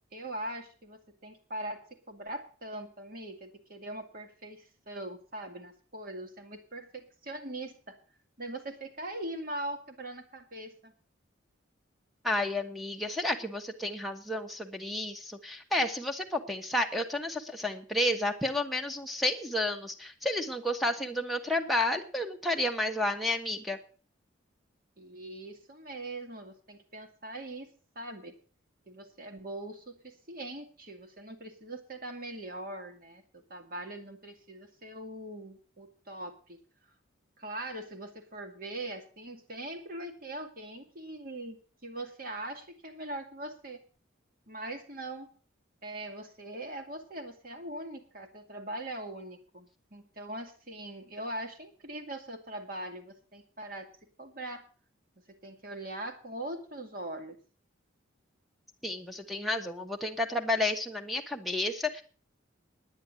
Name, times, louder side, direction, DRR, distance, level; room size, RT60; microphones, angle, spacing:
voice 1, 0.1-8.0 8.4-10.9 25.0-27.7 28.0-28.4 28.9-36.6 37.4-43.8 44.5-45.3 45.8-53.9 54.2-54.6 55.3-57.4, right 1 dB, 45° right, 5 dB, 2.2 m, -41 dB
voice 2, 12.2-23.8 58.8-62.0, left 1 dB, ahead, 6 dB, 1.1 m, -31 dB
10.0 x 10.0 x 7.5 m, 0.40 s
head